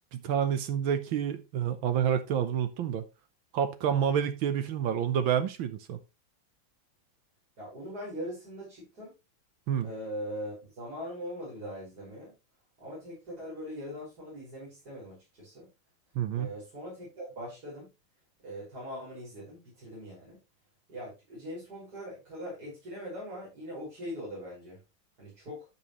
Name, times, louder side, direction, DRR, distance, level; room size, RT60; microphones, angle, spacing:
voice 1, 0.1-3.0 3.5-6.0 9.7-9.9 16.1-16.5, right 8 dB, 80° right, 9 dB, 1.7 m, -28 dB
voice 2, 7.6-9.1 9.8-12.3 12.8-15.7 16.3-17.9 18.4-20.4 20.9-24.8 25.2-25.7, equal, 50° right, -6 dB, 6.1 m, -41 dB
13.5 x 5.7 x 3.1 m, 0.26 s
omnidirectional pair, 2.2 m